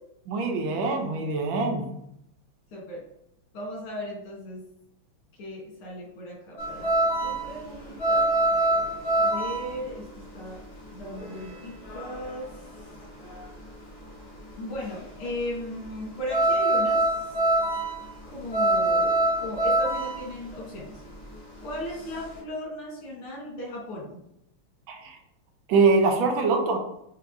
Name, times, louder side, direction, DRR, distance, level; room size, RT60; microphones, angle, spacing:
voice 1, 0.3-1.9 24.9-25.1 25.7-26.8, right 4 dB, 75° right, 3 dB, 1.4 m, -23 dB
voice 2, 2.7-3.0 3.5-4.7 5.4-8.3 9.2-10.1 10.3-10.6 10.9-12.5 14.5-17.0 18.3-21.0 21.6-24.2, left 1 dB, 80° left, -3 dB, 2.5 m, -36 dB
sound 1, 6.6-13.7 14.0-22.4, right 2 dB, 30° left, 1.4 m, -26 dB
5.7 x 3.0 x 2.6 m, 0.77 s
omnidirectional pair, 2.4 m